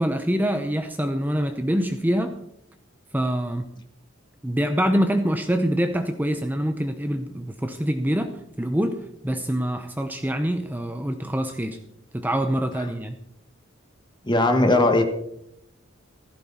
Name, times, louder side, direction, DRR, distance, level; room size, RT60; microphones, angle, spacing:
voice 1, 0.0-2.3 3.1-3.7 4.4-11.8 12.1-13.2, equal, 10° right, 7 dB, 0.7 m, -25 dB
voice 2, 14.3-15.0, left 2 dB, 20° left, 5 dB, 1.6 m, -18 dB
16.0 x 14.5 x 4.3 m, 0.76 s
head